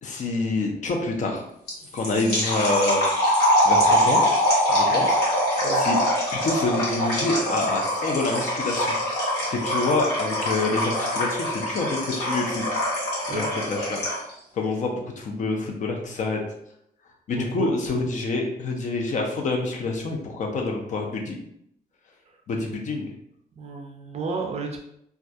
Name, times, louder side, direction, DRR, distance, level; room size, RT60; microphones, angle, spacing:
voice 1, 0.0-1.4 1.9-3.0 3.6-4.2 4.7-5.2 5.8-6.0 6.3-8.9 9.5-12.6 13.3-14.0 14.6-16.4 17.3-21.4 22.5-23.1, left 3 dB, 50° left, 1 dB, 0.5 m, -27 dB
sound 1, 1.7-14.3, equal, 90° left, 1.0 m, -23 dB
voice 2, 17.4-17.7 23.6-24.8, right 4 dB, 40° right, 2 dB, 0.4 m, -32 dB
2.3 x 2.2 x 2.6 m, 0.74 s
cardioid pair, 135°, 16 cm